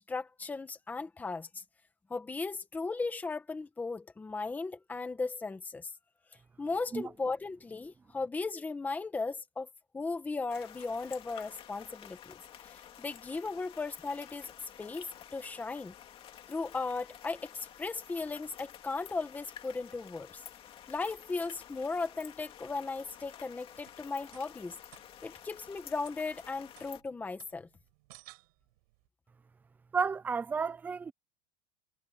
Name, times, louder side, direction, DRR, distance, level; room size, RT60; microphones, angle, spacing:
voice 1, 0.0-1.6 2.1-5.9 6.6-9.7 9.9-12.4 12.6-14.5 14.8-15.9 16.5-20.4 20.9-24.8 25.2-27.7, left 3 dB, 10° left, 1.5 m, -37 dB
sound 1, 10.5-27.0, left 10 dB, 30° left, 2.3 m, -51 dB
sound 2, 23.7-29.1, right 21 dB, 80° right, 6.6 m, -60 dB
voice 2, 29.9-31.1, right 5 dB, 10° right, 0.4 m, -32 dB
cardioid pair, 170°, 19 cm